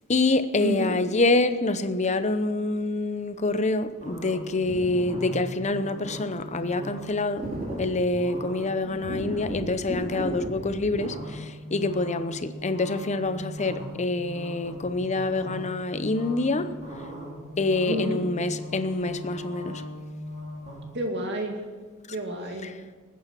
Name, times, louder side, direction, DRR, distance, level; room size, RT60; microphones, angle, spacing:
voice 1, 0.1-16.7 17.6-19.8, left 2 dB, 35° left, 0.8 m, -26 dB
voice 2, 0.6-0.9 17.8-18.2 20.9-21.6 22.1-22.7, right 1 dB, 55° right, 2.3 m, -30 dB
sound 1, 4.0-20.8, equal, 35° right, 4.2 m, -38 dB
20.0 x 9.5 x 6.1 m
head